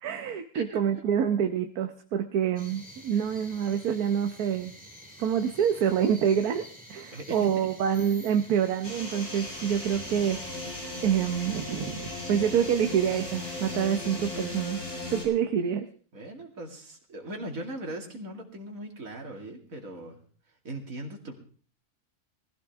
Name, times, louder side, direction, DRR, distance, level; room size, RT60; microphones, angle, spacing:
voice 1, 0.0-4.7 5.2-6.6 6.9-10.5 11.0-14.8 15.1-15.9, right 8 dB, 80° right, 7 dB, 1.4 m, -27 dB
sound 1, 2.6-14.6, equal, 5° right, 2.4 m, -49 dB
voice 2, 7.1-7.7 16.1-20.2 20.6-21.4, right 1 dB, 65° right, 2 dB, 2.9 m, -39 dB
sound 2, 8.8-15.2, left 2 dB, 80° left, 5.8 m, -37 dB
20.5 x 14.5 x 3.6 m, 0.42 s
omnidirectional pair, 1.6 m